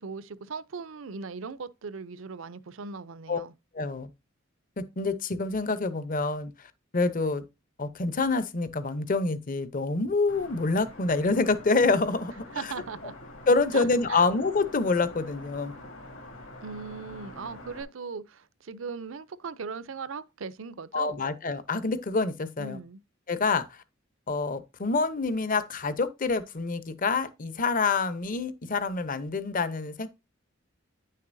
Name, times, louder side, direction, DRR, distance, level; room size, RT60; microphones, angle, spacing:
voice 1, 0.0-3.5 12.5-13.2 13.7-14.3 16.6-21.2 22.6-23.0, right 5 dB, 70° right, 0.6 m, -38 dB
voice 2, 3.7-4.1 4.8-6.5 6.9-7.4 7.8-12.7 13.5-15.8 20.9-22.8 23.3-23.8 24.3-30.1, left 3 dB, 40° left, 0.7 m, -27 dB
sound 1, 10.3-17.8, left 1 dB, 70° left, 2.4 m, -46 dB
9.6 x 6.6 x 2.6 m
head